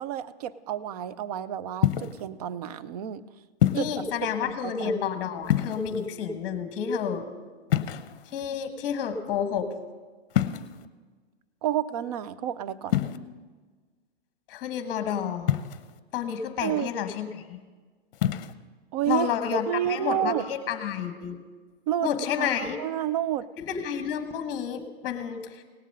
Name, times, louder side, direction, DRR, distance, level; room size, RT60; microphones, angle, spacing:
voice 1, 0.0-3.2 3.7-4.0 4.4-5.1 11.6-13.1 16.6-16.9 18.9-19.3 19.7-20.5 21.9-23.5, right 11 dB, 40° right, 15 dB, 0.5 m, -30 dB
sound 1, 1.8-2.3 3.6-4.0 5.4-6.1 7.7-8.4 10.3-10.9 12.9-13.2 15.5-16.0 18.1-18.5, left 12 dB, 60° left, 0.7 m, -26 dB
voice 2, 3.7-7.3 8.3-9.7 14.5-15.5 16.1-17.6 19.1-21.4 22.0-22.8 23.6-25.6, left 8 dB, 30° left, 8 dB, 1.2 m, -30 dB
18.0 x 7.3 x 5.4 m, 1.4 s
hypercardioid pair, 140°, 32 cm